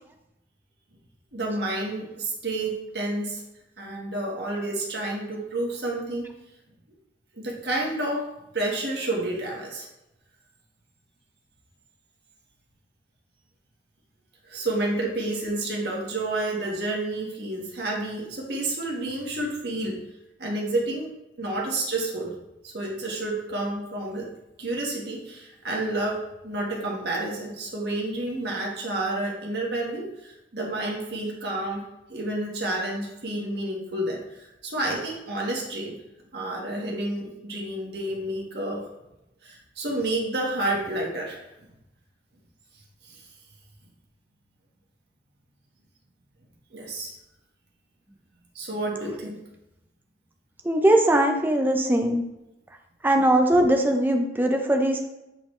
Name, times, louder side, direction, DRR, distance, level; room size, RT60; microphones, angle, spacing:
voice 1, 1.3-3.4 3.8-6.3 7.3-8.2 8.5-9.9 14.5-20.0 20.4-21.1 21.4-22.3 22.6-24.3 24.6-31.8 32.1-36.0 36.3-38.8 39.4-41.4 43.1-43.3 46.7-47.1 48.5-49.4, right 2 dB, 65° right, -2 dB, 1.4 m, -30 dB
voice 2, 50.6-52.2 53.0-55.0, right 1 dB, 10° right, 4 dB, 0.5 m, -20 dB
8.1 x 3.9 x 3.2 m, 0.91 s
head